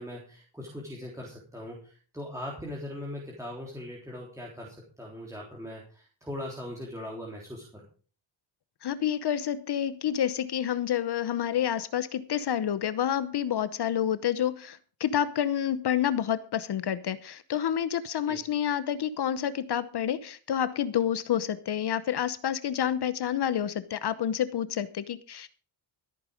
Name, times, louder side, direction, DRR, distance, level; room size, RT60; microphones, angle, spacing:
voice 1, 0.0-7.8 18.3-18.4, left 1 dB, 5° right, -2 dB, 3.5 m, -40 dB
voice 2, 8.8-25.5, left 10 dB, 55° left, 15 dB, 0.9 m, -29 dB
14.5 x 8.8 x 5.2 m, 0.40 s
cardioid pair, 110°, 48 cm